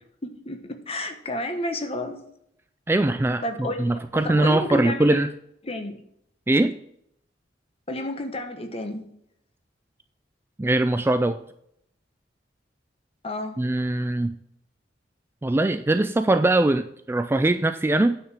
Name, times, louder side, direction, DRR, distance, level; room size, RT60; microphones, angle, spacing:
voice 1, 0.2-2.2 3.4-5.2 5.6-6.0 7.9-9.1 13.2-13.6, left 1 dB, 35° left, 1.2 m, -31 dB
voice 2, 2.9-5.3 6.5-6.8 10.6-11.4 13.6-14.4 15.4-18.2, right 2 dB, 15° right, 0.3 m, -22 dB
9.2 x 5.0 x 5.7 m
head